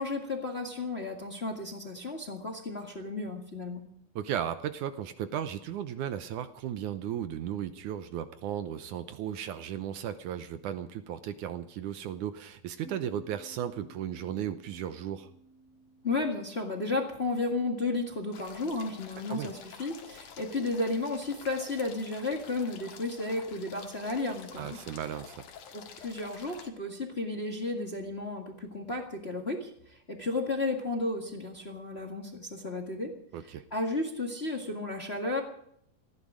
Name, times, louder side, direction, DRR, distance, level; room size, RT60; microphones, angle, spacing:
voice 1, 0.0-3.8 16.0-24.8 25.7-33.1 33.7-35.4, left 2 dB, 30° left, 2 dB, 1.1 m, -33 dB
voice 2, 4.2-15.3 19.3-19.5 24.6-25.5 33.3-33.6, right 10 dB, 75° right, 11 dB, 1.9 m, -35 dB
sound 1, 12.8-18.2, right 2 dB, 20° right, 3.1 m, -57 dB
sound 2, 18.3-26.7, left 7 dB, 60° left, 3.0 m, -49 dB
19.0 x 15.0 x 5.0 m, 0.70 s
omnidirectional pair, 4.3 m